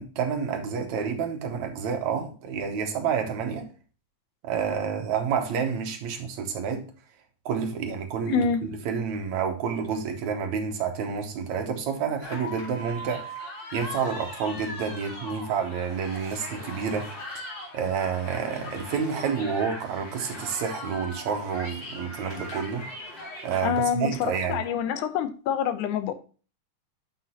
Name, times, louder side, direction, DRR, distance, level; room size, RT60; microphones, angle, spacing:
voice 1, 0.0-3.7 4.4-6.9 7.5-13.3 13.7-17.1 17.7-22.9 23.4-24.6, right 6 dB, 70° right, 2.4 m, -29 dB
voice 2, 8.3-8.6 23.6-26.1, left 8 dB, 80° left, 2.2 m, -26 dB
sound 1, 12.2-23.6, left 1 dB, 35° left, 3.2 m, -39 dB
9.0 x 6.1 x 2.8 m
omnidirectional pair, 3.5 m